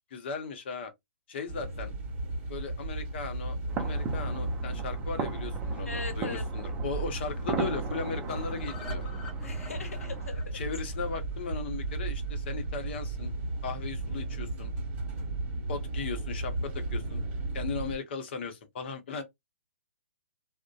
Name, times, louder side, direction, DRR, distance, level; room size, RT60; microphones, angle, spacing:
voice 1, 0.1-0.9 1.3-1.9 2.5-9.0 10.5-13.3 13.6-14.7 15.7-17.2 17.5-19.2, left 5 dB, 50° left, 0.8 m, -37 dB
sound 1, 1.5-18.0, right 2 dB, 35° right, 1.3 m, -35 dB
sound 2, 3.7-10.3, right 5 dB, 15° right, 0.5 m, -38 dB
voice 2, 5.9-6.4 9.4-10.6 19.1-19.2, left 4 dB, 75° left, 0.9 m, -40 dB
sound 3, 8.3-12.3 12.6-12.7 13.0-13.1 13.4-13.5, left 4 dB, 30° left, 1.2 m, -47 dB
2.5 x 2.1 x 2.3 m
hypercardioid pair, 135°, 8 cm